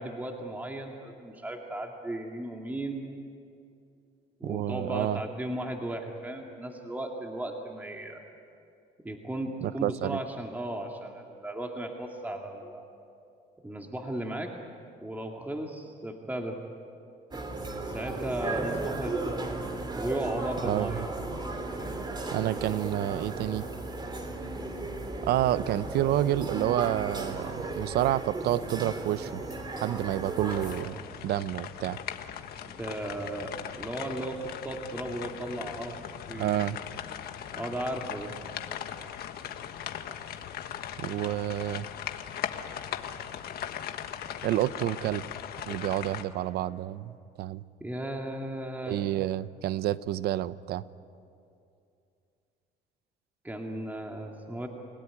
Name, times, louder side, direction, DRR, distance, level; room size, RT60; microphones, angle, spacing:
voice 1, 0.0-3.1 4.4-8.2 9.0-12.9 13.6-14.5 15.0-16.6 17.9-19.5 19.9-21.4 32.6-36.0 36.3-36.5 37.5-38.3 47.8-49.0 53.4-54.7, right 1 dB, 10° right, 1 dB, 2.3 m, -36 dB
voice 2, 4.4-5.2 9.6-10.2 20.6-21.0 22.3-23.6 25.2-29.4 29.8-32.0 36.4-36.8 41.0-41.9 44.4-45.2 45.7-47.6 48.9-50.8, right 13 dB, 75° right, 16 dB, 0.7 m, -29 dB
sound 1, 17.3-30.8, right 2 dB, 25° right, 3.0 m, -35 dB
sound 2, 30.5-46.2, left 9 dB, 65° left, 1.5 m, -39 dB
29.5 x 17.0 x 9.8 m, 2.5 s
cardioid pair, 110°, 17 cm